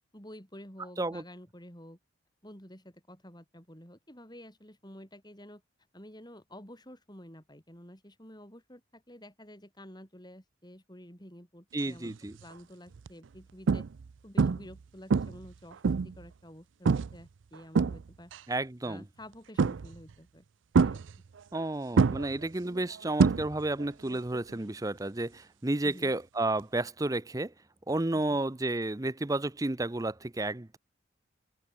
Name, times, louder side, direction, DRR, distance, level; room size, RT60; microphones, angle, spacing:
voice 1, 0.1-2.0 2.4-5.6 5.9-13.9 14.2-18.3 18.8-20.4 20.8-21.0 25.8-26.1 28.1-28.2, equal, 20° left, 7.9 m, -50 dB
voice 2, 11.7-12.3 18.5-19.0 21.5-27.5 27.9-30.8, right 2 dB, 15° right, 0.6 m, -31 dB
sound 1, 12.0-12.4 12.9-13.1 13.7-14.1 14.4-14.8 15.1-16.2 16.9-17.2 17.5-18.4 19.6-20.1 20.7-21.6 22.0-23.9 24.1-24.5 26.6-26.7, right 5 dB, 70° right, 0.4 m, -26 dB
open air
head